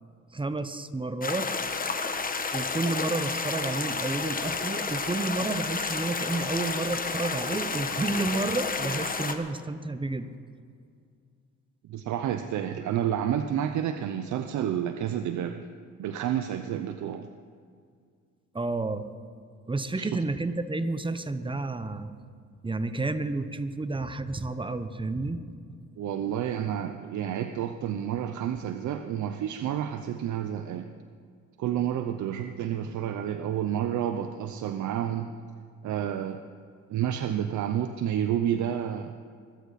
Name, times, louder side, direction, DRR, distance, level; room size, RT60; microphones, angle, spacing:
voice 1, 0.3-1.5 2.5-10.3 18.5-19.1 19.7-22.1 22.6-25.4, right 2 dB, 15° right, 11 dB, 1.0 m, -30 dB
sound 1, 1.2-9.3, left 4 dB, 30° left, 1.2 m, -31 dB
voice 2, 11.9-15.5 16.0-17.3 20.0-20.1 26.0-30.9 31.6-35.3 35.8-36.4 36.9-39.1, right 10 dB, 75° right, 8 dB, 0.8 m, -30 dB
22.5 x 13.0 x 4.2 m, 2.2 s
cardioid pair, 90°, 30 cm